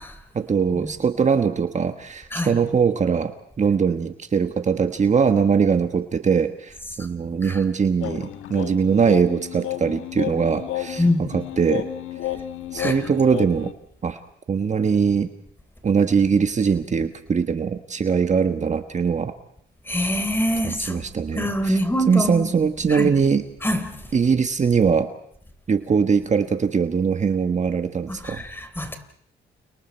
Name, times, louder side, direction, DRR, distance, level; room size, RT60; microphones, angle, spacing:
voice 1, 0.3-11.9 12.7-13.7 14.0-14.2 14.5-15.3 15.8-19.3 20.6-21.8 22.1-23.4 24.1-25.1 25.7-28.4, right 6 dB, 35° right, 1.4 m, -21 dB
sound 1, 8.0-13.7, left 12 dB, 80° left, 1.7 m, -32 dB
voice 2, 11.0-11.3 12.8-13.0 19.9-22.5 22.9-23.1 23.6-24.1 28.1-29.0, left 1 dB, 10° left, 3.7 m, -25 dB
30.0 x 29.5 x 4.5 m
cardioid pair, 90°, 20 cm